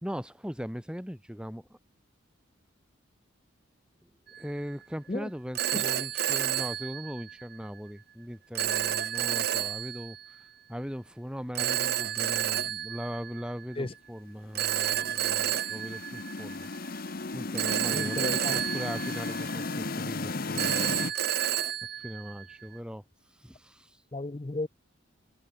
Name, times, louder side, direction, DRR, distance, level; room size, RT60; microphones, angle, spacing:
voice 1, 0.0-1.8 4.0-4.1 4.4-16.7 17.3-21.1 22.0-23.0 23.3-24.0, equal, 5° right, 2.4 m, -39 dB
Telephone, 4.3-4.6 5.6-7.6 8.6-10.3 11.6-13.7 14.6-16.9 17.6-19.9 20.6-22.8, right 10 dB, 50° right, 0.9 m, -31 dB
sound 1, 14.7-21.1, left 3 dB, 45° left, 0.9 m, -35 dB
voice 2, 17.9-18.5 24.1-24.7, left 2 dB, 25° left, 0.6 m, -34 dB
head